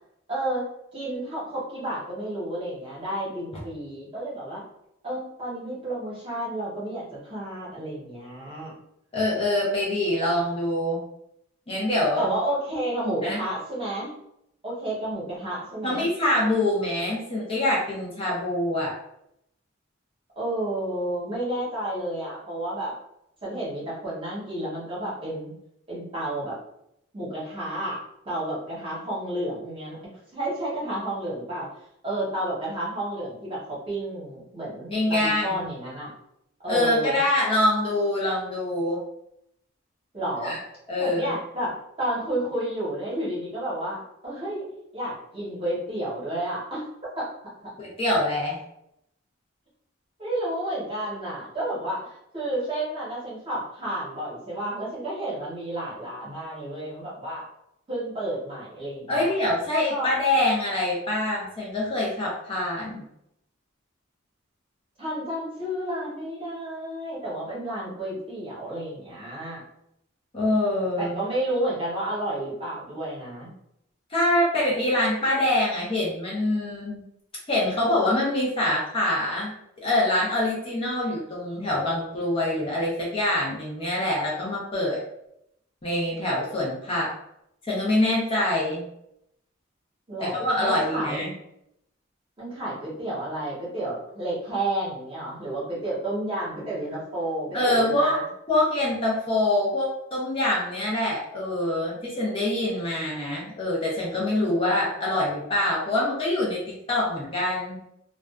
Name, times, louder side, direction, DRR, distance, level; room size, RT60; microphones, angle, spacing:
voice 1, 0.3-0.7 0.9-4.6 5.0-8.7 12.1-14.1 14.6-16.1 20.4-22.9 23.4-25.5 25.9-26.6 27.1-30.0 30.3-31.7 32.0-36.1 36.6-37.2 40.1-40.5 41.0-44.6 44.9-46.8 47.2-47.3 47.6-47.7 50.2-57.4 57.9-59.3 59.9-60.1 65.0-69.6 71.0-73.5 90.1-91.2 92.4-98.2, right 1 dB, 25° right, -7 dB, 0.9 m, -31 dB
voice 2, 9.1-11.0 11.7-12.3 13.2-13.4 15.8-18.9 34.9-35.6 36.7-39.0 40.4-40.6 40.9-41.3 47.8-48.6 59.1-63.0 70.3-71.2 74.1-77.0 77.5-79.5 79.8-85.0 85.8-87.1 87.6-88.8 90.2-91.3 97.5-98.2 98.5-107.8, left 1 dB, 25° left, -5 dB, 0.6 m, -25 dB
2.4 x 2.1 x 2.4 m, 0.78 s
head